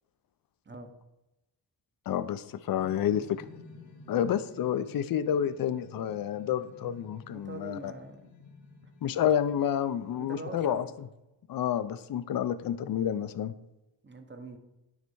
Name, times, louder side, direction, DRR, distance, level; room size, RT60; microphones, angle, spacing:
voice 1, 2.1-3.4 4.1-7.9 9.0-11.1 11.5-13.5, left 9 dB, 50° left, 13 dB, 0.5 m, -29 dB
sound 1, 2.8-11.2, left 3 dB, 90° left, 1.7 m, -53 dB
voice 2, 7.3-8.3 10.1-10.9 14.0-14.6, right 3 dB, 25° right, 7 dB, 0.8 m, -43 dB
9.5 x 3.3 x 4.6 m, 0.94 s
wide cardioid pair, 115°, 44 cm